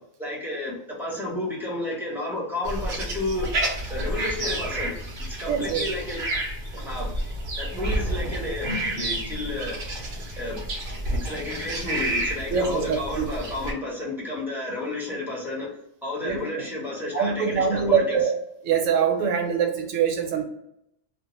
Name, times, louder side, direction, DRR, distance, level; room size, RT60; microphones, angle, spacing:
voice 1, 0.2-3.5 3.9-4.9 5.3-6.2 6.8-7.1 7.6-9.8 10.4-10.7 11.1-18.2, left 2 dB, ahead, -6 dB, 0.5 m, -31 dB
sound 1, 2.6-13.7, right 1 dB, 55° right, 0.6 m, -30 dB
voice 2, 5.5-5.8 12.5-13.3 16.2-16.4 17.1-18.4 18.6-20.4, right 6 dB, 75° right, 3 dB, 1.0 m, -23 dB
2.3 x 2.1 x 2.9 m, 0.77 s
omnidirectional pair, 1.4 m